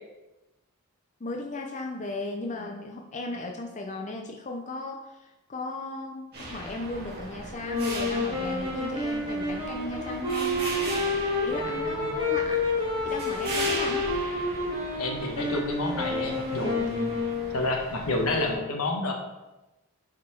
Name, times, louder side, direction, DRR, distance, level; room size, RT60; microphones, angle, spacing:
voice 1, 1.2-12.6 13.0-14.1, left 2 dB, 35° left, 1 dB, 0.5 m, -36 dB
sound 1, 6.3-18.5, right 2 dB, 45° right, 2.2 m, -38 dB
sound 2, 7.6-17.6, left 2 dB, 20° right, 1.6 m, -29 dB
voice 2, 11.6-12.1 15.0-17.1 17.5-19.1, left 2 dB, 80° left, 2 dB, 1.2 m, -29 dB
7.5 x 4.1 x 4.3 m, 1.0 s
head